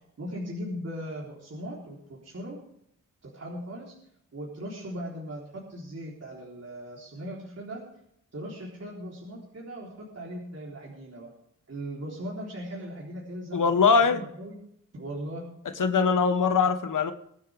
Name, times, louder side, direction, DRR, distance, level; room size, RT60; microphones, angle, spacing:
voice 1, 0.2-2.6 3.2-3.9 4.3-7.8 8.3-11.3 11.7-13.7 14.0-14.6 14.9-15.5, equal, 50° right, -4 dB, 3.7 m, -38 dB
voice 2, 13.5-14.2 15.8-17.1, left 5 dB, 75° left, 8 dB, 1.3 m, -22 dB
23.0 x 9.5 x 3.5 m, 0.74 s
wide cardioid pair, 85°, 31 cm